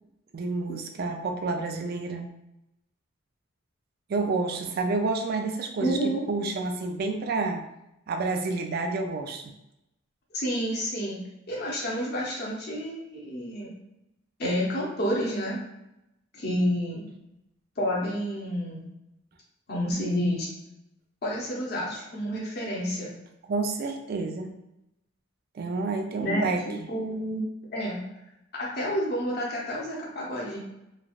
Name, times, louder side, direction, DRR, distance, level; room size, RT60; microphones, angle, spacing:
voice 1, 0.3-2.3 4.1-7.6 8.1-9.4 23.5-24.5 25.6-26.9, right 3 dB, 50° right, 4 dB, 0.4 m, -29 dB
voice 2, 5.8-6.2 10.3-11.2 11.5-13.7 14.4-15.6 16.3-17.1 17.8-18.9 19.7-20.5 21.2-23.2 26.2-27.4 27.7-28.0 28.6-30.6, equal, 55° left, -4 dB, 0.8 m, -29 dB
3.2 x 2.3 x 2.4 m, 0.86 s
head